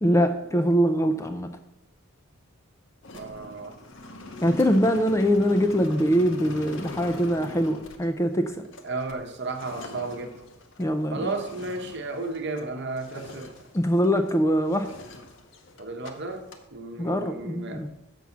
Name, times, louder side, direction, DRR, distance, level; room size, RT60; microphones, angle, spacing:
voice 1, 0.0-1.5 4.4-8.7 10.8-11.3 13.7-14.9 17.0-17.9, equal, 15° left, 7 dB, 0.4 m, -23 dB
sound 1, 3.0-12.7 13.0-14.4 14.7-16.1 16.4-16.6, left 2 dB, 55° left, 0.9 m, -43 dB
voice 2, 3.1-3.8 8.8-10.4 11.1-13.5 15.8-17.9, right 3 dB, 50° right, 5 dB, 0.9 m, -33 dB
6.9 x 6.2 x 5.9 m, 0.92 s
head